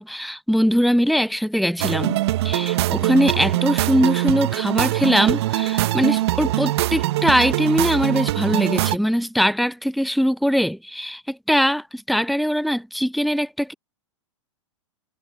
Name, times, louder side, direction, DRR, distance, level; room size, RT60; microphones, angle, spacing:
voice 1, 0.0-2.2 2.4-13.7, equal, ahead, 0.4 m, -21 dB
sound 1, 1.8-9.0, right 16 dB, 55° right, 2.1 m, -22 dB
figure-of-eight pair, 100°, 16 cm